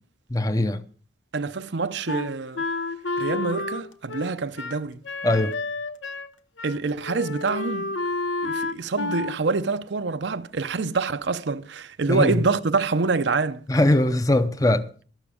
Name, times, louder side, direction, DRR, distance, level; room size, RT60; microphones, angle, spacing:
voice 1, 0.3-0.8 5.2-5.5 12.1-12.4 13.7-14.9, left 1 dB, 20° left, 0.6 m, -21 dB
voice 2, 1.3-2.6 3.2-5.0 6.6-8.0 8.4-13.6, right 4 dB, 75° right, 0.6 m, -26 dB
Wind instrument woodwind instrument, 2.1-6.3 6.6-6.8 7.0-9.4, left 3 dB, 85° left, 0.9 m, -30 dB
12.5 x 12.5 x 5.0 m
head